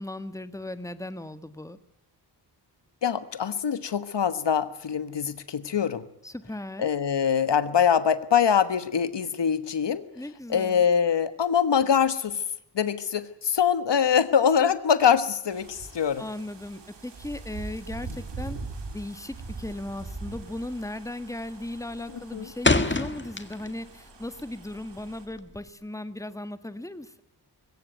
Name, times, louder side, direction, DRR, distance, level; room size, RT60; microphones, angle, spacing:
voice 1, 0.0-1.8 6.2-6.9 10.1-10.9 14.6-14.7 16.2-18.6 18.9-27.2, left 1 dB, 5° left, 12 dB, 1.4 m, -37 dB
voice 2, 3.0-6.0 6.8-10.0 10.5-12.4 12.7-16.2 22.3-22.5, left 7 dB, 80° left, 13 dB, 1.4 m, -23 dB
sound 1, 15.5-25.3, right 3 dB, 90° right, 3.6 m, -42 dB
sound 2, 19.4-19.8 20.1-20.5 20.8-21.2 21.6-23.9 24.2-25.7, left 3 dB, 25° left, 1.7 m, -27 dB
22.0 x 17.0 x 9.3 m, 0.79 s
wide cardioid pair, 80°, 42 cm